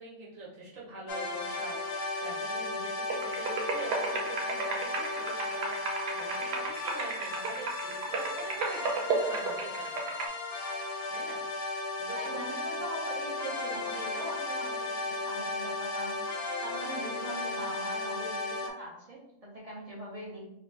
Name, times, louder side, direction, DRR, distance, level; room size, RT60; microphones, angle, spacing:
voice 1, 0.0-10.6 11.1-11.4 12.0-12.4, right 3 dB, 55° right, -6 dB, 1.4 m, -45 dB
sound 1, 1.1-18.7, left 2 dB, 65° left, 0.6 m, -35 dB
sound 2, 3.1-10.3, right 3 dB, 90° right, 1.3 m, -34 dB
voice 2, 12.1-16.4 16.6-20.5, right 1 dB, 30° right, -4 dB, 0.9 m, -42 dB
3.1 x 3.0 x 3.4 m, 0.77 s
omnidirectional pair, 1.7 m